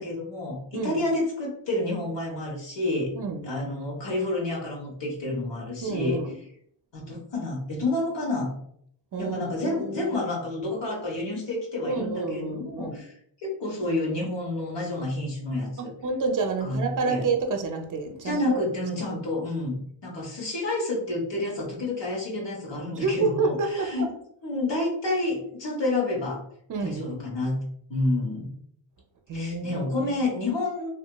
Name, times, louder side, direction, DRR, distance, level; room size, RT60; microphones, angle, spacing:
voice 1, 0.0-3.1 3.4-6.2 6.9-8.5 9.2-13.1 13.4-15.9 16.6-17.2 18.2-24.1 24.4-26.4 26.8-27.6 27.9-28.5 29.3-30.9, left 2 dB, 60° left, -3 dB, 1.1 m, -29 dB
voice 2, 3.1-3.6 5.8-6.3 9.1-10.3 11.8-13.0 15.8-18.6 19.1-19.2 22.9-24.1 26.7-27.2 29.3-30.2, right 4 dB, 40° right, 5 dB, 0.6 m, -29 dB
2.7 x 2.5 x 2.2 m, 0.67 s
cardioid pair, 65°, 49 cm